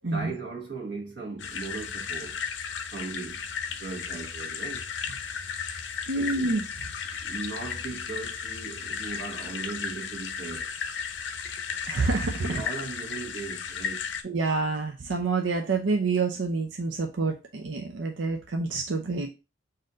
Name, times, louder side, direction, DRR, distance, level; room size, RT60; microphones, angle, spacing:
voice 1, 0.0-2.4 2.9-3.5 3.8-4.9 6.1-6.4 7.2-10.7 12.4-14.1, right 3 dB, 65° right, 1.3 m, -38 dB
sound 1, 1.4-14.2, left 6 dB, 70° left, 0.6 m, -35 dB
voice 2, 6.1-6.6 11.9-12.6 14.2-19.3, right 3 dB, 90° right, 0.6 m, -27 dB
4.1 x 2.6 x 3.7 m
head